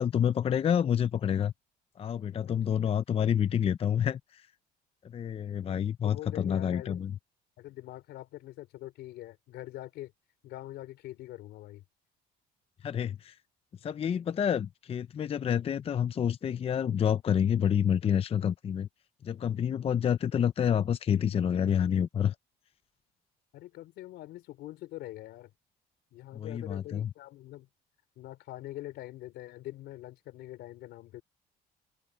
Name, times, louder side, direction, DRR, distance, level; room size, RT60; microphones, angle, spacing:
voice 1, 0.0-1.5 2.0-4.5 5.0-7.1 12.8-13.4 13.8-18.9 19.2-22.3 26.3-27.1, left 8 dB, 35° left, 0.6 m, -28 dB
voice 2, 6.0-7.0 7.6-10.1 10.4-11.8 23.5-25.5 26.1-27.7 28.2-31.2, left 15 dB, 80° left, 4.5 m, -44 dB
cardioid pair, 110°, 17 cm